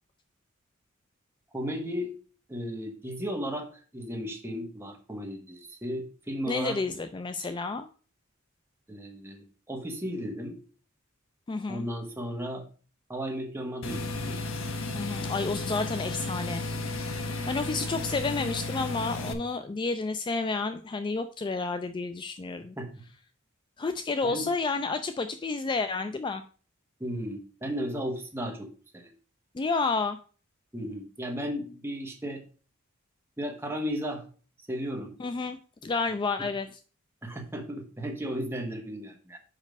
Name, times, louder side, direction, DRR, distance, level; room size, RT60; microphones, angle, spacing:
voice 1, 1.5-2.1 2.5-6.8 8.9-10.6 11.7-12.6 13.1-14.4 22.8-22.9 24.2-24.5 27.0-29.1 30.7-32.4 33.4-34.2 34.7-35.1 36.4-36.5 37.2-39.4, equal, 10° right, 2 dB, 1.2 m, -35 dB
voice 2, 6.5-7.9 11.5-11.8 14.9-22.8 23.8-26.4 29.5-30.2 35.2-36.7, left 3 dB, 25° left, 9 dB, 0.3 m, -31 dB
sound 1, 13.8-19.3, left 2 dB, 70° left, 0.9 m, -33 dB
5.2 x 5.1 x 5.2 m, 0.39 s
head